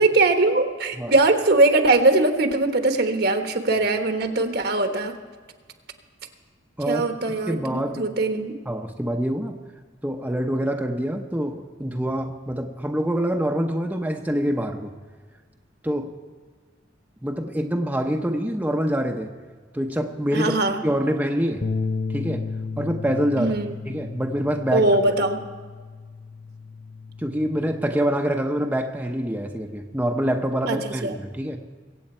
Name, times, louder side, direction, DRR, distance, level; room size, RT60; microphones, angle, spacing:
voice 1, 0.0-5.1 6.9-8.5 20.3-20.8 23.4-23.7 24.7-25.4 30.7-31.1, right 2 dB, 60° right, 6 dB, 1.2 m, -21 dB
voice 2, 6.8-8.0 8.7-9.6 10.0-14.9 15.8-16.1 17.2-19.3 19.7-20.5 20.8-21.7 22.1-22.5 22.8-23.6 23.8-24.9 27.2-31.6, equal, 10° right, 2 dB, 0.8 m, -25 dB
Bass guitar, 21.6-27.9, left 4 dB, 40° left, 0.4 m, -33 dB
22.5 x 8.5 x 4.4 m, 1.5 s
head